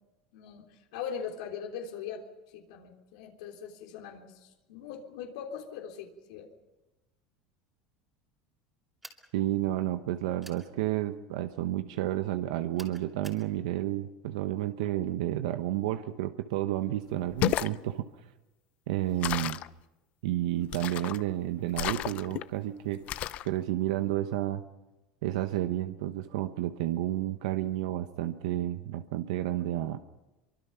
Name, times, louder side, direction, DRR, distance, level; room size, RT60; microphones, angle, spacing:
voice 1, 0.3-2.2 2.5-6.5, left 7 dB, 85° left, 1 dB, 3.5 m, -41 dB
sound 1, 9.0-9.3 10.4-10.7 12.8-13.5, right 1 dB, 5° right, 2.8 m, -49 dB
voice 2, 9.3-18.1 18.9-19.6 20.2-23.0 23.4-24.6 25.2-30.0, right 14 dB, 85° right, 8 dB, 1.1 m, -31 dB
sound 2, 17.2-17.8 19.2-19.7 20.7-21.2 21.7-22.4 23.1-23.5, left 14 dB, 45° left, 0.7 m, -32 dB
24.5 x 24.0 x 5.8 m, 1.0 s
supercardioid pair, 145°, 3 cm